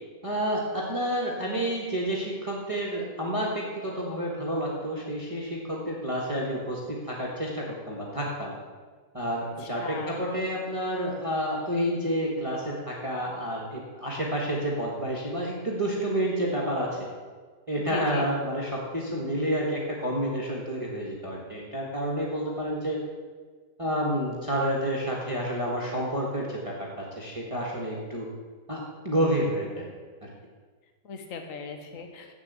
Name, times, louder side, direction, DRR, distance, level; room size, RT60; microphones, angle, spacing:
voice 1, 0.2-8.5 9.1-17.1 17.7-23.0 23.8-28.3 28.7-29.9 30.2-30.3, equal, 20° right, -3 dB, 1.5 m, -29 dB
voice 2, 9.8-10.2 17.9-18.3 31.0-32.3, left 4 dB, 50° left, 5 dB, 1.5 m, -37 dB
7.9 x 7.1 x 8.2 m, 1.5 s
omnidirectional pair, 1.9 m